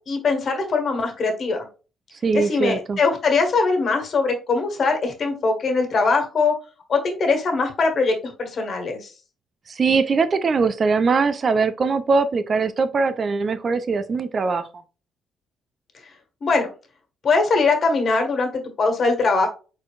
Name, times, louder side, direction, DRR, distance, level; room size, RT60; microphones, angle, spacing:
voice 1, 0.1-1.7 2.3-6.5 6.9-9.1 16.4-16.7 17.2-19.5, left 4 dB, 50° left, 4 dB, 1.6 m, -21 dB
voice 2, 2.2-3.0 9.7-14.7, right 4 dB, 45° right, 11 dB, 0.6 m, -21 dB
4.5 x 4.0 x 2.5 m, 0.33 s
hypercardioid pair, 50°, 0 cm